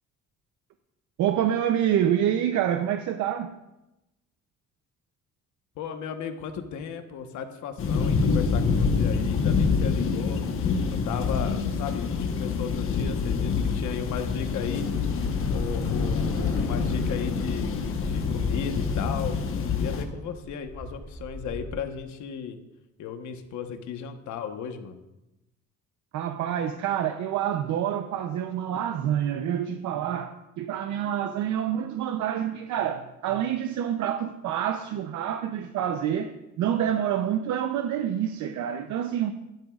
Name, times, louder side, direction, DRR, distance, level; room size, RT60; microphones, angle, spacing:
voice 1, 1.2-3.6 26.1-39.3, right 10 dB, 75° right, 0.7 m, -27 dB
voice 2, 5.8-10.4 11.0-14.9 15.5-19.4 19.8-22.6 23.0-25.0, left 7 dB, 75° left, 1.2 m, -35 dB
sound 1, 7.8-20.0, left 5 dB, 45° left, 1.1 m, -26 dB
Bus / Traffic noise roadway noise, 12.9-21.7, equal, 10° left, 2.8 m, -39 dB
15.5 x 12.0 x 2.4 m
cardioid pair, 180°, 29 cm